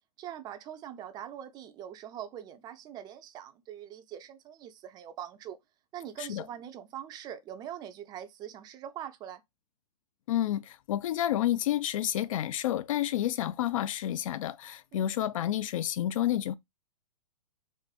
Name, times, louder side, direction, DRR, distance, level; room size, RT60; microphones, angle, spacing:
voice 1, 0.2-5.6 5.9-9.4 14.9-15.1, right 10 dB, 20° right, 0.4 m, -43 dB
voice 2, 10.3-16.5, left 12 dB, 60° left, 0.4 m, -30 dB
3.7 x 2.6 x 2.3 m
figure-of-eight pair, 115°, 20 cm